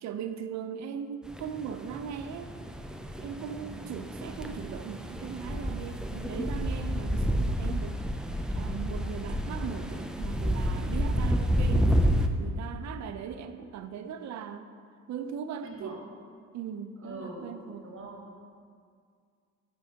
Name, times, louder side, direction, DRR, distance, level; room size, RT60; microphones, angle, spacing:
voice 1, 0.0-2.5 3.2-8.0 8.5-14.7 15.1-16.0 16.5-17.9, right 7 dB, 65° right, 9 dB, 0.5 m, -39 dB
sound 1, 1.3-12.3, equal, 5° right, 0.3 m, -30 dB
voice 2, 15.6-15.9 17.0-18.3, right 2 dB, 45° right, -1 dB, 1.3 m, -43 dB
9.0 x 5.4 x 2.8 m, 2.1 s
cardioid pair, 90°, 30 cm